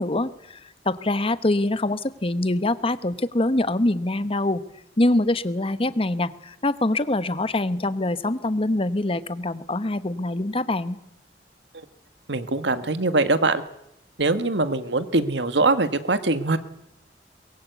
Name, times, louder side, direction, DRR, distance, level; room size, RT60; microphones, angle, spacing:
voice 1, 0.0-4.6 5.0-11.0, left 2 dB, 35° left, 13 dB, 1.1 m, -24 dB
voice 2, 12.3-13.6 14.2-16.6, right 3 dB, 85° right, 11 dB, 1.7 m, -22 dB
23.5 x 22.0 x 8.3 m, 0.82 s
head